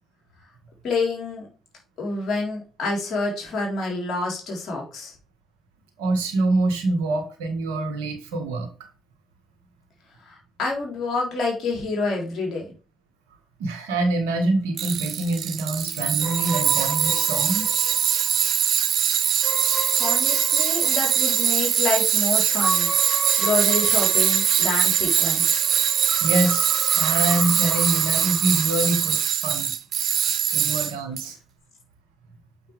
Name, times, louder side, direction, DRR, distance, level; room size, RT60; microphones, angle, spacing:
voice 1, 0.8-1.5 2.0-5.1 10.3-12.7 19.9-22.9 23.4-25.6 30.5-30.7, left 3 dB, 60° left, 3.7 m, -28 dB
voice 2, 6.0-8.7 13.6-17.7 26.2-29.7 30.5-31.4, right 2 dB, 90° right, 1.5 m, -25 dB
Tools, 14.8-31.2, right 9 dB, 60° right, 0.7 m, -22 dB
sound 1, 16.2-29.3, right 1 dB, 10° right, 2.5 m, -36 dB
7.3 x 6.0 x 3.4 m
supercardioid pair, 65°, 0 cm